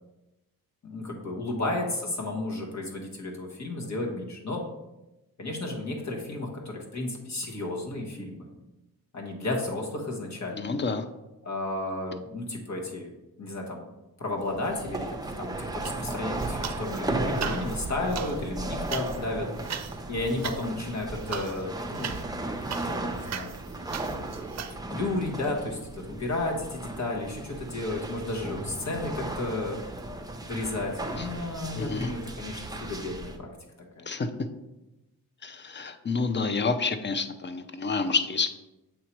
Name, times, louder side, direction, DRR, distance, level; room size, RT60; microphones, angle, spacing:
voice 1, 0.8-4.6 5.4-8.5 9.1-10.7 11.4-13.1 13.4-13.9 14.2-19.5 20.1-22.2 22.8-23.6 24.7-29.8 30.5-33.5 34.0-34.1, left 2 dB, 50° left, -1 dB, 1.4 m, -33 dB
voice 2, 10.5-11.0 31.7-32.1 34.1-34.3 35.4-38.5, left 4 dB, 30° left, 9 dB, 0.6 m, -28 dB
sound 1, 14.4-33.4, right 2 dB, 10° right, 0.7 m, -35 dB
sound 2, 15.8-17.0 17.3-24.7, right 8 dB, 50° right, 0.5 m, -39 dB
7.5 x 2.8 x 4.6 m, 1.0 s
cardioid pair, 60°, 36 cm